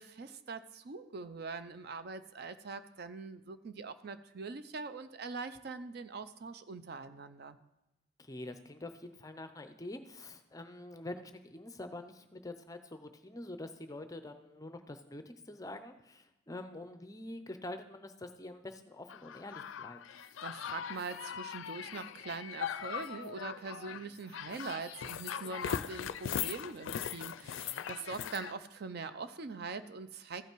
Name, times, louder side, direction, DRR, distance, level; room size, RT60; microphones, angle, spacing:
voice 1, 0.0-7.6 20.1-30.5, right 4 dB, 55° right, 11 dB, 0.5 m, -43 dB
voice 2, 8.2-20.0 27.7-27.8, left 1 dB, 20° left, 9 dB, 0.5 m, -46 dB
sound 1, 19.1-28.5, left 9 dB, 85° left, 0.4 m, -40 dB
14.5 x 5.7 x 4.5 m, 0.95 s
head